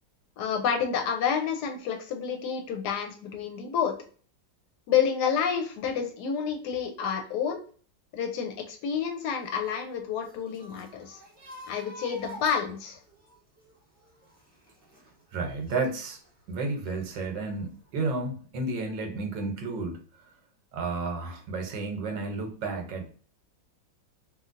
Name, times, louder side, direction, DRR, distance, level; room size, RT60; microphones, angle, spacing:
voice 1, 0.4-3.9 4.9-7.6 8.1-11.2 11.7-13.0, left 7 dB, 75° left, 4 dB, 1.0 m, -29 dB
sound 1, 9.4-16.3 16.7-17.6 17.9-18.0, equal, 5° left, 1.2 m, -50 dB
voice 2, 15.3-16.2 16.5-20.0 20.7-23.1, right 3 dB, 80° right, 3 dB, 1.4 m, -32 dB
3.1 x 2.6 x 2.4 m, 0.42 s
omnidirectional pair, 1.9 m